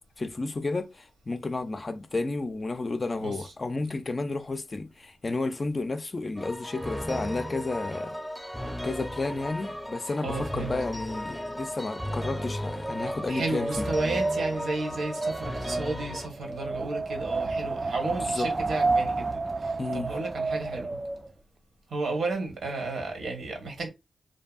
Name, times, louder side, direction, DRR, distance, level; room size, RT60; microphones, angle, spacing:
voice 1, 0.2-8.2 8.8-13.9 18.1-18.5 19.8-20.1, left 3 dB, 40° left, 0.4 m, -32 dB
voice 2, 3.2-3.5 10.2-10.7 13.3-21.0 21.9-23.9, right 3 dB, 80° right, 1.0 m, -33 dB
sound 1, 6.4-16.3, equal, 5° left, 0.6 m, -35 dB
Wind, 12.1-21.3, right 3 dB, 35° right, 0.3 m, -31 dB
2.6 x 2.5 x 2.3 m
cardioid pair, 60°, 0 cm